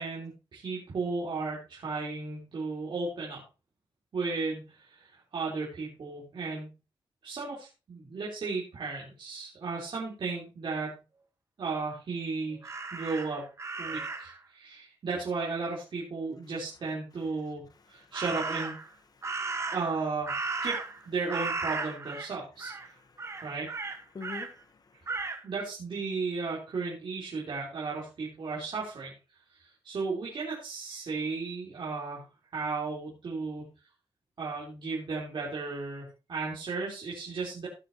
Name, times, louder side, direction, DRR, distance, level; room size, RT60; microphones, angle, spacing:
voice 1, 0.0-3.4 4.1-6.7 7.2-11.0 11.6-13.5 13.8-18.7 19.7-20.3 20.6-20.8 21.1-22.7 23.4-23.7 25.4-29.1 29.5-33.7 34.4-37.7, right 4 dB, 60° right, -6 dB, 3.7 m, -35 dB
Crow, 12.6-14.4 18.1-18.9 19.2-21.0 21.3-22.3 22.6-22.9 23.2-24.5 25.1-25.4, right 3 dB, 30° right, 1.3 m, -35 dB
voice 2, 17.7-18.1 19.2-19.7 22.9-23.4 24.1-25.2, left 4 dB, 45° left, 10 dB, 1.1 m, -47 dB
17.5 x 6.9 x 2.9 m, 0.30 s
wide cardioid pair, 180°, 9 cm